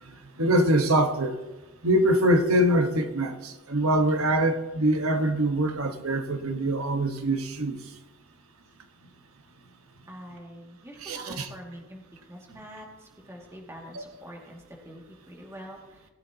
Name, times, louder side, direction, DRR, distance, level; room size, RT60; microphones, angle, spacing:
voice 1, 0.4-1.4 1.8-7.8 11.0-11.5 13.9-14.0, right 1 dB, 80° right, 6 dB, 1.3 m, -24 dB
voice 2, 10.1-12.0 12.3-16.1, equal, 15° right, -1 dB, 2.2 m, -45 dB
19.5 x 9.6 x 2.9 m, 1.1 s
head